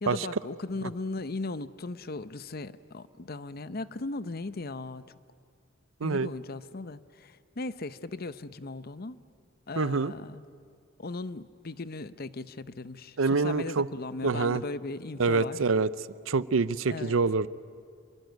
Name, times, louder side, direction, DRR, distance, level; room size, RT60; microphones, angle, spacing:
voice 1, 0.0-5.0 6.0-9.2 9.7-10.4 11.0-15.6 16.8-17.2, left 3 dB, 50° left, 14 dB, 0.7 m, -37 dB
voice 2, 9.8-10.1 13.2-13.9 14.2-14.6 15.2-15.9 16.3-17.5, right 4 dB, 85° right, 17 dB, 0.6 m, -26 dB
27.0 x 22.5 x 9.3 m, 2.3 s
head